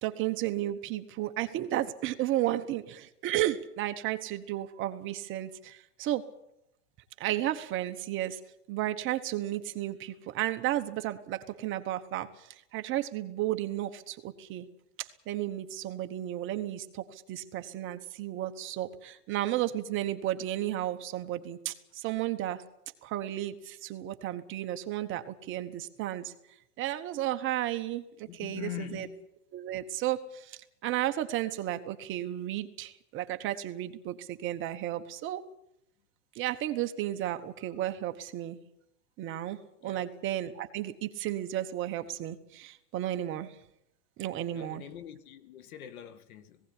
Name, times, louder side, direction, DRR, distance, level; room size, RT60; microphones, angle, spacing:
voice 1, 0.0-6.2 7.2-8.4 8.7-14.7 15.0-22.6 23.0-26.3 26.8-29.1 29.5-35.4 36.3-38.6 39.2-43.6 44.2-44.8, right 13 dB, 25° right, 1.1 m, -33 dB
voice 2, 28.3-29.3 39.8-40.1 44.5-46.6, left 12 dB, 65° left, 2.1 m, -43 dB
18.5 x 17.0 x 9.9 m
supercardioid pair, 150°, 46 cm